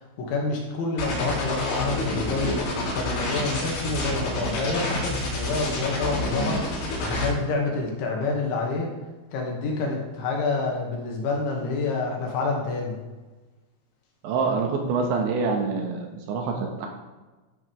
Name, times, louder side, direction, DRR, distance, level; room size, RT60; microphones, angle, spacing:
voice 1, 0.2-2.6 2.9-6.7 7.1-8.9 9.3-13.0, left 3 dB, 70° left, -1 dB, 4.2 m, -27 dB
sound 1, 1.0-7.3, left 2 dB, 55° left, 4.9 m, -28 dB
voice 2, 14.2-16.9, right 4 dB, 70° right, 2 dB, 3.5 m, -26 dB
14.0 x 10.0 x 3.4 m, 1.2 s
omnidirectional pair, 5.8 m